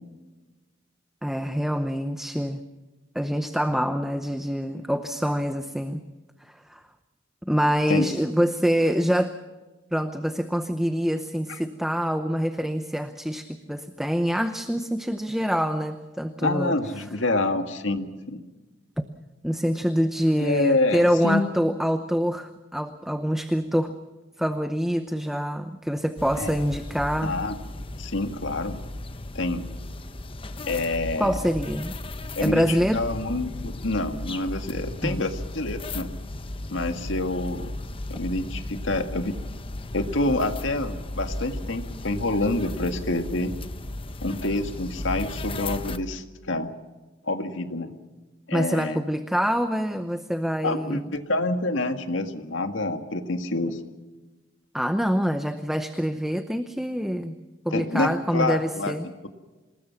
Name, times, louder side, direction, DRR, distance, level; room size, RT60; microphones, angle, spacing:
voice 1, 1.2-2.6 3.1-6.0 6.4-6.8 7.4-9.4 9.9-16.8 19.4-23.9 24.4-27.3 31.2-31.9 32.4-33.0 35.0-35.3 48.5-51.1 54.7-57.4 57.6-59.1, equal, ahead, 8 dB, 0.7 m, -25 dB
voice 2, 16.4-18.4 20.4-21.4 26.4-26.6 27.2-27.6 28.0-28.8 29.3-29.7 30.7-31.3 32.4-36.1 36.7-37.7 38.1-39.3 39.9-43.5 44.2-46.7 47.2-47.9 48.5-49.0 50.6-53.8 57.7-59.0, left 2 dB, 75° left, 6 dB, 1.9 m, -27 dB
sound 1, 26.2-46.0, left 1 dB, 30° left, 1.0 m, -35 dB
26.5 x 20.0 x 5.9 m, 1.2 s
head